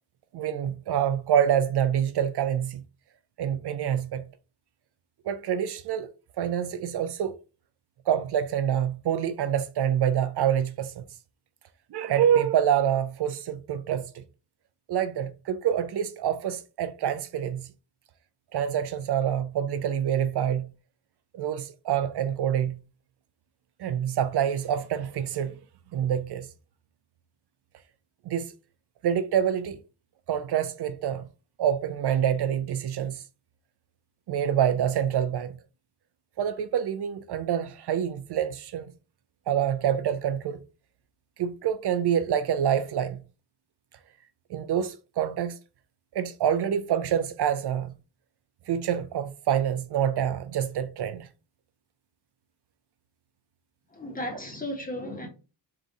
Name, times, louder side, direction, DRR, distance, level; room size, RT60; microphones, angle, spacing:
voice 1, 0.3-2.8 3.4-4.3 5.2-6.1 6.4-7.4 8.1-11.0 11.9-14.2 14.9-17.7 18.5-20.7 21.3-22.8 23.8-25.6 25.9-26.5 28.3-28.5 29.0-29.8 30.3-31.2 31.6-33.2 34.3-35.5 36.4-38.9 39.5-40.6 41.4-43.2 44.5-45.6 46.1-47.9 48.7-51.3, right 9 dB, 65° right, 0.5 m, -26 dB
voice 2, 53.9-55.3, left 1 dB, 20° left, 1.3 m, -35 dB
3.8 x 2.6 x 4.1 m
cardioid pair, 105°, 43 cm